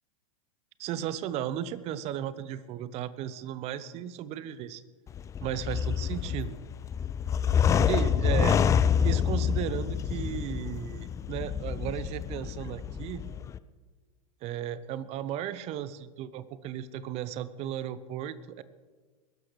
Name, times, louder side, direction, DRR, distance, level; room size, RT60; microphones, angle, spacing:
voice 1, 0.8-4.8 5.4-6.6 7.5-8.6 9.0-13.2 14.4-18.6, right 11 dB, 35° right, 16 dB, 0.8 m, -35 dB
sound 1, 5.1-13.6, left 7 dB, 15° left, 0.4 m, -27 dB
21.5 x 12.5 x 3.2 m, 1.4 s
hypercardioid pair, 95°, 18 cm